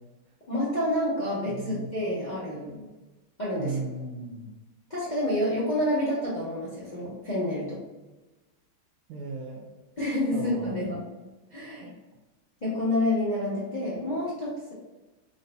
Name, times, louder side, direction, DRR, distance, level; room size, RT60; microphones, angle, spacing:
voice 1, 0.5-2.8 3.4-3.8 4.9-7.8 10.0-11.0 11.5-11.9 12.6-14.7, left 1 dB, 40° left, -8 dB, 0.6 m, -28 dB
voice 2, 1.5-1.9 3.6-4.5 9.1-9.7 10.3-10.8 11.8-11.9, right 3 dB, 85° right, -1 dB, 1.5 m, -36 dB
3.9 x 3.9 x 2.2 m, 1.1 s
omnidirectional pair, 2.3 m